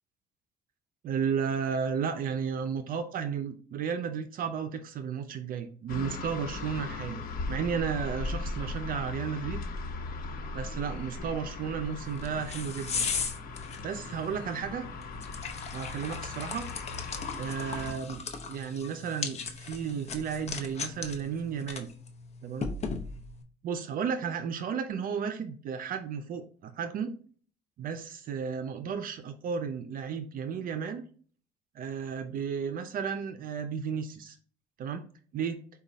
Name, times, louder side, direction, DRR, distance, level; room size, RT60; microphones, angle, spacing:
voice 1, 1.0-7.2 7.5-9.6 10.5-13.1 13.8-14.8 15.7-16.7 17.4-21.9 22.4-22.7 23.6-27.1 27.8-31.0 31.7-34.4 34.8-35.0 35.3-35.6, right 7 dB, 55° right, 8 dB, 0.5 m, -33 dB
sound 1, 5.9-17.9, left 3 dB, 60° left, 1.0 m, -38 dB
sound 2, 12.0-23.4, left 5 dB, 40° left, 0.7 m, -38 dB
4.9 x 2.3 x 4.0 m, 0.43 s
cardioid pair, 110°, 17 cm